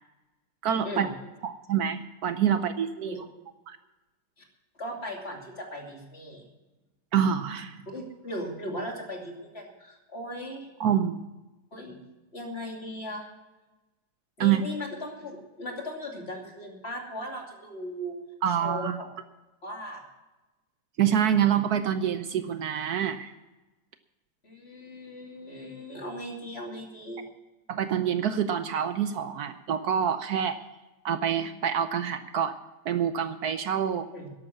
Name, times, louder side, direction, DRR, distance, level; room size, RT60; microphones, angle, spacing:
voice 1, 0.6-1.1 1.4-3.3 3.7-3.8 7.1-7.8 10.8-11.2 14.4-14.6 18.4-19.0 21.0-23.3 27.7-30.6 31.0-32.5 32.8-34.1, right 9 dB, 70° right, 10 dB, 1.2 m, -26 dB
voice 2, 4.8-6.4 7.9-10.7 11.7-12.0 12.3-13.3 14.4-18.2 18.5-19.1 19.6-20.0 24.4-27.3 34.1-34.3, left 1 dB, 35° left, 0 dB, 3.0 m, -38 dB
13.5 x 11.0 x 5.8 m, 1.1 s
omnidirectional pair, 1.8 m